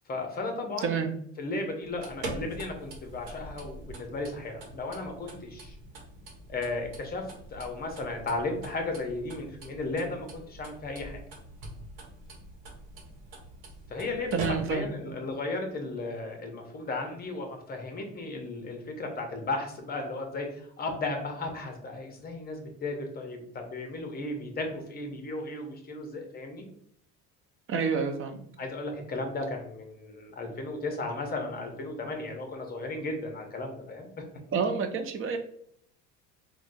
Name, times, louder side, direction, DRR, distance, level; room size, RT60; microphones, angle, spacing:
voice 1, 0.1-0.9 1.4-5.7 6.5-11.2 13.9-26.7 28.6-34.2, left 2 dB, 25° left, 3 dB, 0.7 m, -35 dB
voice 2, 0.8-1.1 14.3-15.1 27.7-28.4 34.5-35.4, right 5 dB, 35° right, 6 dB, 0.5 m, -29 dB
sound 1, 1.8-15.0, right 2 dB, 65° right, 1.1 m, -43 dB
3.5 x 2.2 x 2.6 m, 0.68 s
supercardioid pair, 110°, 37 cm